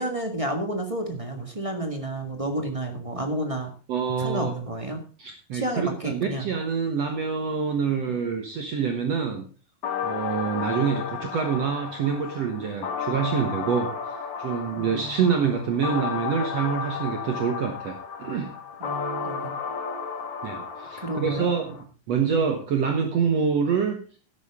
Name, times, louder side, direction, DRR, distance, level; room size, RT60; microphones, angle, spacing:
voice 1, 0.0-3.7 4.2-5.0 5.5-6.5 14.8-15.2 18.8-19.6 21.0-21.5, right 1 dB, 25° right, 4 dB, 0.7 m, -31 dB
voice 2, 3.9-4.5 5.2-9.4 10.0-13.9 14.4-18.5 20.4-24.0, right 6 dB, 60° right, 5 dB, 2.1 m, -26 dB
sound 1, 9.8-21.8, left 6 dB, 65° left, 2.8 m, -33 dB
13.0 x 11.0 x 3.6 m, 0.38 s
omnidirectional pair, 3.9 m